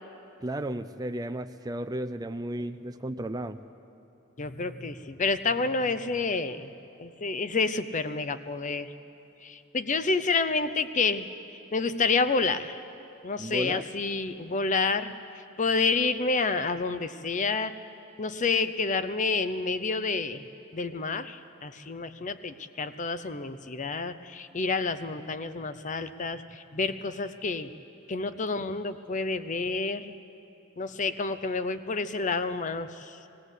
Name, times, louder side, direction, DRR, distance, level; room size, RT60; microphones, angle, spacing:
voice 1, 0.4-3.6 13.4-13.9 20.9-21.0, right 1 dB, 20° right, 8 dB, 0.5 m, -34 dB
voice 2, 4.4-6.7 7.0-8.9 9.4-11.3 11.7-12.8 13.2-15.1 15.6-17.7 18.2-20.5 20.7-27.7 28.1-30.1 30.8-33.2, left 4 dB, 40° left, 13 dB, 0.6 m, -29 dB
20.0 x 16.5 x 8.2 m, 2.8 s
head